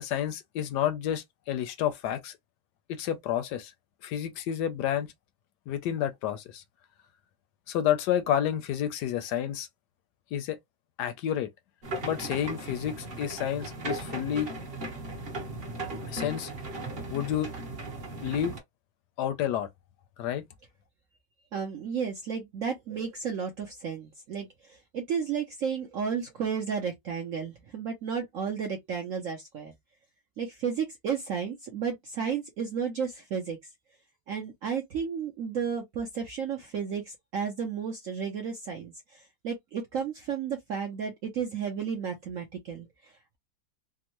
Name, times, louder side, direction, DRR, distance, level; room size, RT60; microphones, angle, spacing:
voice 1, 0.0-2.3 2.9-3.7 4.0-5.1 5.7-6.6 7.7-9.7 10.3-10.6 11.0-11.5 12.0-14.5 16.1-16.5 17.1-17.5 18.2-18.5 19.2-19.7 20.2-20.4, left 10 dB, 75° left, 1.0 m, -30 dB
sound 1, 11.8-18.6, right 2 dB, 40° right, 1.0 m, -37 dB
voice 2, 21.5-29.7 30.4-33.6 34.3-43.4, right 6 dB, 80° right, 0.7 m, -33 dB
3.5 x 2.0 x 2.9 m
omnidirectional pair, 2.1 m